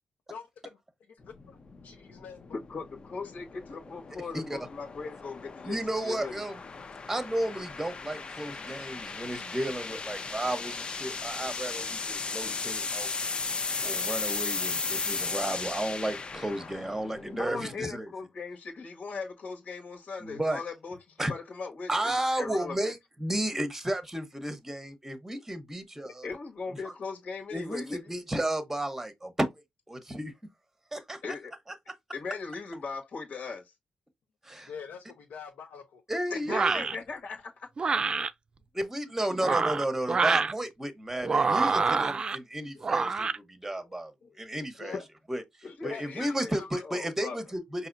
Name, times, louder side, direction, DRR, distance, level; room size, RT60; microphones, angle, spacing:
voice 1, 0.3-0.8 1.1-1.6 1.8-2.4 34.6-36.0 44.8-45.0 45.6-46.8, left 6 dB, 90° left, 1.0 m, -45 dB
sound 1, 1.2-17.5, left 4 dB, 35° left, 0.6 m, -36 dB
voice 2, 2.5-6.4 17.3-22.9 26.0-28.0 31.2-31.5 32.1-33.7 36.3-37.4 39.4-39.6 42.7-42.9 44.2-44.4 44.9-45.0 45.6-46.6 46.8-47.4, left 4 dB, 65° left, 1.7 m, -39 dB
voice 3, 5.6-6.6 7.1-13.1 13.8-18.1 20.2-20.6 21.2-21.3 21.9-26.3 27.5-29.5 29.9-30.3 30.9-31.2 34.4-34.7 36.1-36.9 38.8-44.1 44.4-44.9 45.3-45.4 45.8-47.9, right 1 dB, 10° right, 0.9 m, -33 dB
sound 2, 36.5-36.9 37.8-38.3 39.3-40.5 41.2-42.4 42.8-43.4, right 4 dB, 30° right, 0.4 m, -26 dB
5.6 x 2.8 x 2.5 m
wide cardioid pair, 140°, 3 cm